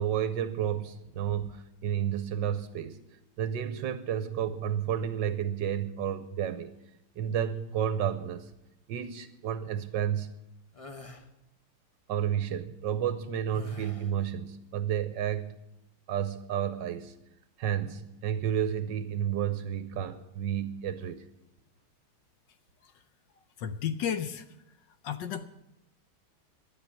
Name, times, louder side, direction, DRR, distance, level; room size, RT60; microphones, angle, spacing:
voice 1, 0.0-3.0 3.4-6.7 7.2-8.5 8.9-10.3 12.1-15.6 16.1-17.2 17.6-21.3, right 9 dB, 70° right, 1.2 m, -31 dB
sound 1, 10.7-11.3 13.5-14.2, left 3 dB, 40° left, 0.4 m, -46 dB
voice 2, 23.6-24.5 25.0-25.5, left 8 dB, 70° left, 1.2 m, -33 dB
12.5 x 9.3 x 8.5 m
omnidirectional pair, 2.3 m